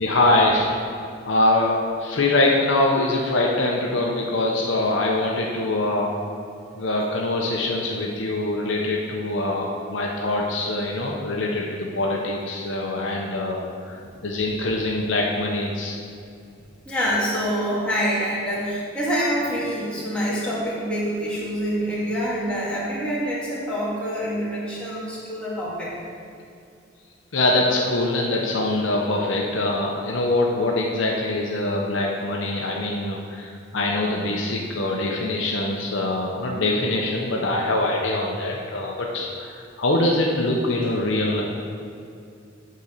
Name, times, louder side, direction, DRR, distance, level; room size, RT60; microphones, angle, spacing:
voice 1, 0.0-6.1 6.7-14.0 14.2-15.9 27.3-41.4, left 2 dB, 75° left, -1 dB, 0.8 m, -23 dB
voice 2, 16.9-25.9, equal, 5° left, -8 dB, 1.9 m, -26 dB
8.5 x 3.9 x 6.5 m, 2.4 s
head